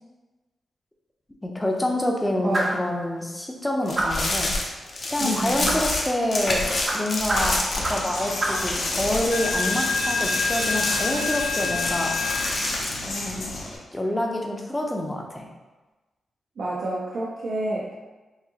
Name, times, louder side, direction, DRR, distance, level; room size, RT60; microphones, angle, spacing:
voice 1, 1.4-4.5 5.1-12.1 13.0-15.5, left 1 dB, 10° left, 0 dB, 0.6 m, -27 dB
sound 1, 2.5-2.9 3.9-4.3 5.6-5.9 6.8-8.1 8.4-8.7, right 1 dB, 35° right, 0.6 m, -27 dB
sound 2, 3.9-8.3 8.6-13.0, left 2 dB, 50° left, 0.7 m, -28 dB
voice 2, 5.2-5.8 16.6-17.9, right 1 dB, 70° right, -6 dB, 0.6 m, -29 dB
Coin (dropping), 7.8-13.8, left 3 dB, 90° left, 0.7 m, -28 dB
4.8 x 2.7 x 2.8 m, 1.2 s
cardioid pair, 95°, 0 cm